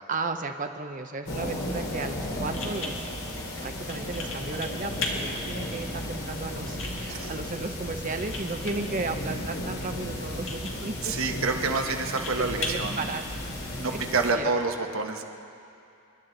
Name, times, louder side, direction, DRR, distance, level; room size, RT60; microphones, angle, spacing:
voice 1, 0.1-3.0 3.6-11.2 11.9-12.0 12.4-13.2 13.9-14.0 14.3-14.5, right 3 dB, 35° right, 6 dB, 0.6 m, -34 dB
sound 1, 1.3-14.3, left 1 dB, 80° left, 2.6 m, -35 dB
sound 2, 2.5-13.9, left 3 dB, 60° left, 1.9 m, -40 dB
voice 2, 11.0-13.0 13.7-15.2, right 4 dB, 70° right, 4 dB, 1.1 m, -28 dB
28.0 x 10.5 x 3.9 m, 2.6 s
head